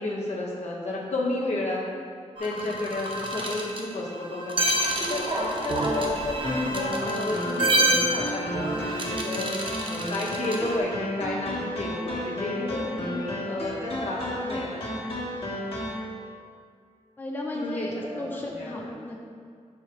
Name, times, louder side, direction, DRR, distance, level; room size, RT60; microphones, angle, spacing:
voice 1, 0.0-1.8 2.4-4.6 5.1-9.5 9.8-15.1 17.5-18.2 18.5-18.9, left 2 dB, 65° left, -4 dB, 1.2 m, -31 dB
sound 1, 2.4-10.8, right 1 dB, 45° right, 0.7 m, -28 dB
sound 2, 6.4-16.0, equal, 50° left, 1.4 m, -33 dB
voice 2, 17.2-19.2, left 1 dB, 15° left, -1 dB, 0.6 m, -34 dB
5.2 x 4.8 x 4.4 m, 2.1 s
wide cardioid pair, 100°, 12 cm